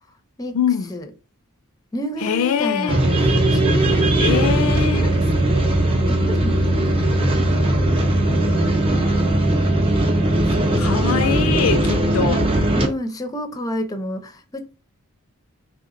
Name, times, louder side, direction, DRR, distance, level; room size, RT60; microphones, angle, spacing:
voice 1, 0.5-0.9 2.2-3.0 4.2-5.2 10.8-12.5, left 7 dB, 70° left, 0.4 m, -23 dB
voice 2, 1.9-4.4 4.9-5.3 6.1-7.7 9.2-9.8 10.5-11.0 12.7-14.8, equal, 15° left, 0.5 m, -31 dB
sound 1, 2.9-12.9, right 1 dB, 25° right, 0.6 m, -18 dB
3.5 x 2.8 x 2.5 m
head